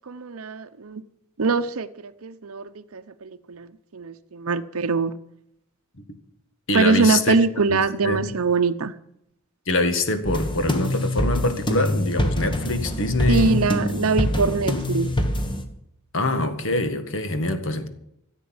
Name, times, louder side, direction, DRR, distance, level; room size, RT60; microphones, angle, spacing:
voice 1, 0.1-1.0 1.4-3.7 3.9-5.1 6.7-8.9 13.3-15.1, right 4 dB, 75° right, 0.7 m, -23 dB
voice 2, 6.7-7.4 7.7-8.4 9.7-13.7 16.1-17.9, left 2 dB, 60° left, 1.7 m, -24 dB
sound 1, 10.2-15.6, left 1 dB, 20° left, 1.5 m, -25 dB
14.5 x 8.3 x 8.6 m
head